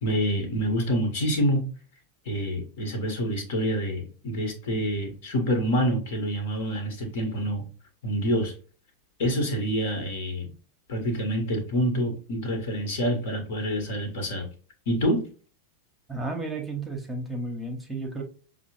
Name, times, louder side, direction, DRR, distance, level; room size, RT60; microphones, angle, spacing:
voice 1, 0.0-1.7 2.2-7.7 8.0-8.5 9.2-10.5 10.9-14.5 14.9-15.3, equal, 55° left, 4 dB, 1.2 m, -27 dB
voice 2, 16.1-18.2, right 2 dB, 10° right, 1 dB, 0.9 m, -33 dB
5.9 x 2.1 x 3.0 m, 0.39 s
figure-of-eight pair, 90°, 0 cm